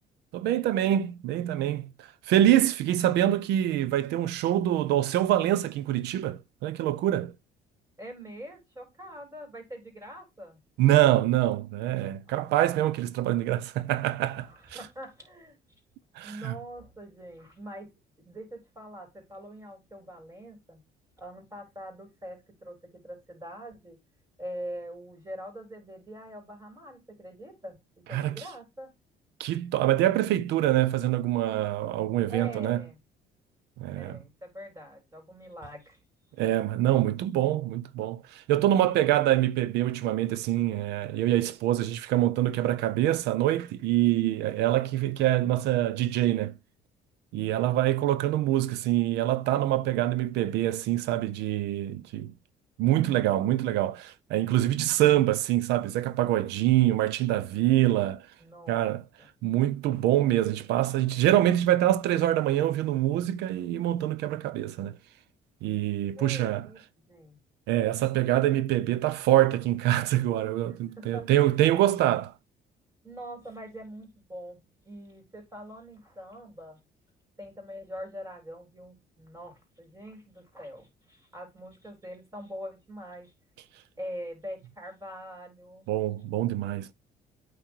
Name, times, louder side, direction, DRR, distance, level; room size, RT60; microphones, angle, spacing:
voice 1, 0.3-7.3 10.8-14.5 16.2-16.5 28.1-28.4 29.4-32.8 33.8-34.2 36.4-46.5 47.3-52.3 52.8-58.3 58.7-59.0 59.4-65.0 65.6-66.7 67.7-72.3 85.9-86.9, right 13 dB, 85° right, 0.7 m, -25 dB
voice 2, 8.0-10.6 12.3-12.7 14.4-15.6 16.2-17.9 18.2-20.8 21.2-24.0 24.4-27.8 28.1-28.9 32.3-33.0 33.9-36.0 40.7-40.9 58.4-58.9 59.2-59.3 66.2-67.4 70.7-71.6 73.0-76.8 77.4-83.3 84.0-85.9, equal, 15° right, 3.7 m, -43 dB
8.9 x 3.2 x 4.5 m
cardioid pair, 110°, 17 cm